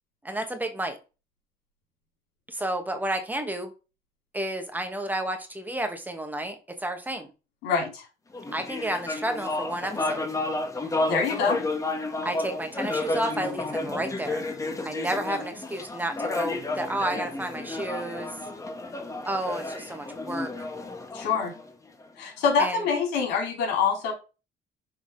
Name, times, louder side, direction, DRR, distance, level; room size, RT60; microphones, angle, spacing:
voice 1, 0.2-1.0 2.5-3.7 4.3-7.3 8.5-10.3 12.2-14.4 14.8-18.3 19.3-20.5 22.6-22.8, right 1 dB, 10° right, 5 dB, 1.3 m, -31 dB
voice 2, 7.6-8.0 11.1-11.6 21.1-21.5 22.2-24.1, left 5 dB, 90° left, 1 dB, 3.3 m, -25 dB
sound 1, 8.3-22.0, left 2 dB, 20° left, 1.2 m, -32 dB
6.4 x 3.8 x 5.0 m, 0.31 s
cardioid pair, 110°, 17 cm